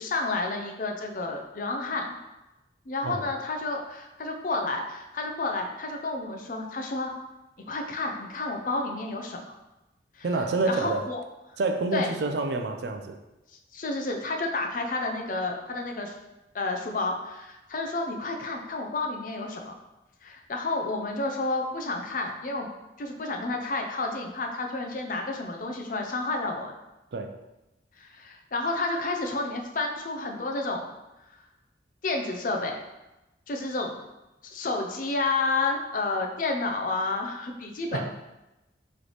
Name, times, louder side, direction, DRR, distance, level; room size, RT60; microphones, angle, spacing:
voice 1, 0.0-2.1 2.9-7.1 7.7-9.4 10.2-10.3 10.7-11.2 11.9-12.1 13.7-16.1 16.5-19.7 20.2-22.7 23.0-26.7 28.0-30.9 32.0-32.8 33.5-34.0 34.5-38.1, left 3 dB, 50° left, 2 dB, 0.5 m, -30 dB
voice 2, 10.2-11.1 11.6-13.2 27.1-27.4 37.9-38.1, right 3 dB, 65° right, 5 dB, 0.4 m, -28 dB
3.2 x 3.1 x 3.9 m, 0.99 s
head